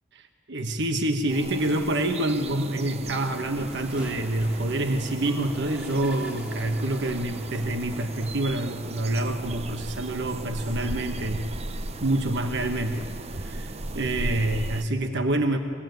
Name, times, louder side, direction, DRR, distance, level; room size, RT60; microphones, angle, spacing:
voice 1, 0.1-11.5 12.0-15.6, right 1 dB, 60° right, 6 dB, 1.2 m, -27 dB
sound 1, 1.3-14.8, right 2 dB, 30° right, 0.6 m, -36 dB
sound 2, 3.5-12.7, equal, 5° right, 1.6 m, -46 dB
24.0 x 17.5 x 9.3 m, 2.5 s
head